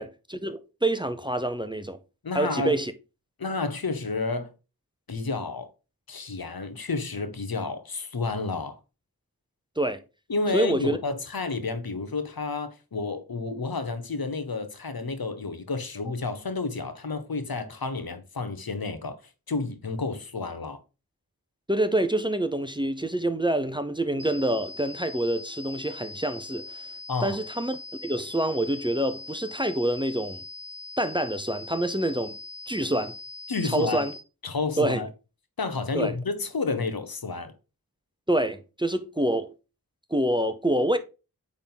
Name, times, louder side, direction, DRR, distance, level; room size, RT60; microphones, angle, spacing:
voice 1, 0.0-2.0 2.3-2.9 9.8-10.0 10.5-11.0 21.7-26.9 27.2-27.8 28.0-30.4 31.0-32.4 32.7-33.1 33.6-34.1 34.8-35.0 35.9-36.1 38.3-39.5 40.1-41.0, right 1 dB, 15° right, 0.7 m, -26 dB
voice 2, 2.2-2.8 3.4-4.5 5.1-5.7 6.1-8.8 10.3-19.2 19.5-20.8 27.1-27.4 33.5-34.0 34.4-35.1 35.6-37.5, left 3 dB, 70° left, 1.1 m, -30 dB
sound 1, 24.2-34.2, left 3 dB, 55° right, 1.7 m, -41 dB
8.7 x 3.7 x 3.9 m
wide cardioid pair, 60°, 37 cm